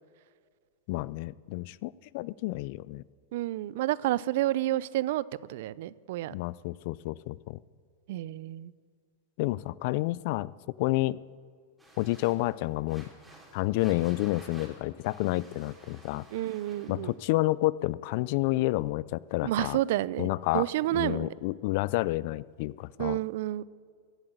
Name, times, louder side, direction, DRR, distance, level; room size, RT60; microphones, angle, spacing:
voice 1, 0.9-3.0 6.3-7.6 9.4-10.5 10.8-11.2 12.0-13.1 13.5-16.3 16.9-19.8 20.2-20.7 20.9-23.2, left 19 dB, 55° left, 21 dB, 0.3 m, -29 dB
voice 2, 3.3-6.3 8.1-8.7 16.3-17.1 19.4-21.3 23.0-23.6, right 15 dB, 65° right, 21 dB, 0.4 m, -30 dB
sound 1, 11.8-17.2, right 1 dB, 5° right, 3.1 m, -53 dB
15.5 x 7.9 x 8.2 m, 2.1 s
hypercardioid pair, 130°, 0 cm